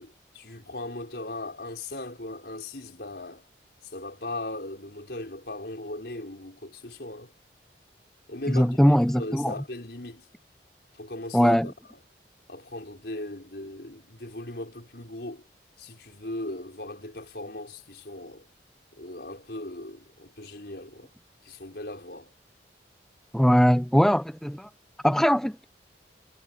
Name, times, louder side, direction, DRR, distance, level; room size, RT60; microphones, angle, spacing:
voice 1, 0.0-3.5 3.9-7.3 8.3-10.3 10.9-11.7 12.5-15.4 15.8-18.5 18.9-21.1 21.4-22.3, left 1 dB, 65° left, 4.7 m, -38 dB
voice 2, 8.5-9.5 11.3-11.7 23.3-24.7 25.0-25.7, equal, ahead, 0.5 m, -21 dB
head